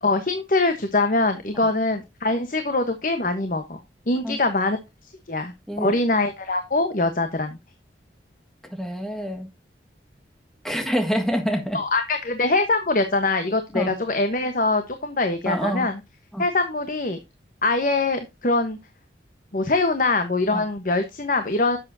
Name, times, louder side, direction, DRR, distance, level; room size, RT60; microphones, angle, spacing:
voice 1, 0.0-3.8 4.1-4.8 5.3-5.5 5.8-7.6 11.7-16.0 16.4-17.2 17.6-18.8 19.5-21.8, left 2 dB, 45° left, 1.1 m, -23 dB
voice 2, 8.7-9.5 10.6-11.8 13.7-13.9 15.5-15.9 16.3-16.4 20.5-20.6, equal, ahead, 1.6 m, -26 dB
11.0 x 7.7 x 2.7 m
head